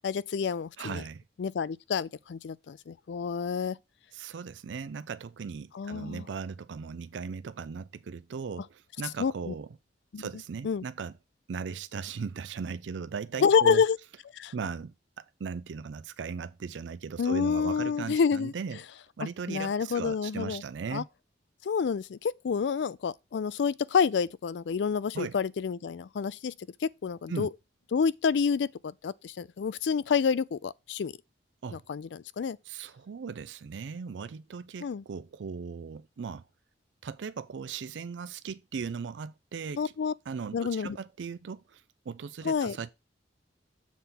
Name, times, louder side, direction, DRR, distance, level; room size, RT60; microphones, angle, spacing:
voice 1, 0.0-1.0 1.4-3.8 5.7-6.2 9.2-9.5 10.1-10.2 10.6-10.8 13.4-14.0 14.3-14.5 17.2-18.5 19.2-20.6 20.9-21.0 21.6-26.5 26.8-27.5 27.9-31.1 31.7-32.6 34.8-35.0 39.8-40.1 40.5-41.0 42.4-42.8, left 6 dB, 75° left, 0.4 m, -28 dB
voice 2, 0.8-1.2 4.1-9.7 10.2-11.1 11.5-13.8 14.5-14.9 15.4-18.8 19.2-21.1 25.1-25.4 27.3-27.5 31.6-31.8 32.7-36.4 37.0-39.8 40.3-41.8 42.1-42.9, right 5 dB, 90° right, 0.4 m, -38 dB
7.3 x 3.5 x 5.8 m
head